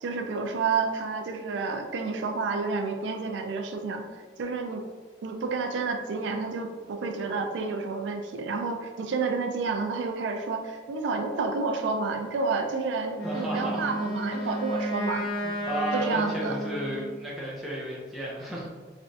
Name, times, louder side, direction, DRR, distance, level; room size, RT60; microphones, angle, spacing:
voice 1, 0.0-4.0 4.4-4.8 5.2-15.3 15.9-16.6, right 4 dB, 90° right, 5 dB, 0.3 m, -30 dB
Wind instrument woodwind instrument, 13.1-17.3, equal, 65° left, 1.0 m, -32 dB
voice 2, 13.2-13.9 14.3-18.7, right 1 dB, ahead, -6 dB, 0.6 m, -34 dB
3.2 x 2.4 x 2.6 m, 1.4 s
head